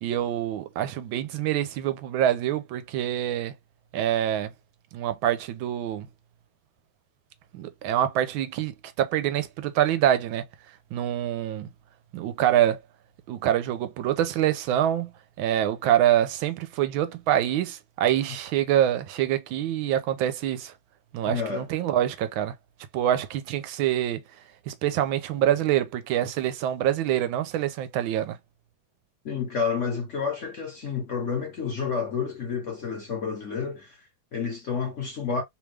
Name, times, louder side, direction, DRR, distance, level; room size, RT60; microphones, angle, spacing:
voice 1, 0.0-3.5 3.9-4.5 4.9-6.1 7.5-10.4 10.9-11.7 12.1-12.8 13.3-15.1 15.4-20.7 21.1-22.5 22.9-24.2 24.7-28.4, right 11 dB, 85° right, 1.4 m, -25 dB
voice 2, 21.2-21.7 29.2-35.4, left 6 dB, 55° left, 0.9 m, -30 dB
3.3 x 2.4 x 3.2 m
omnidirectional pair, 2.2 m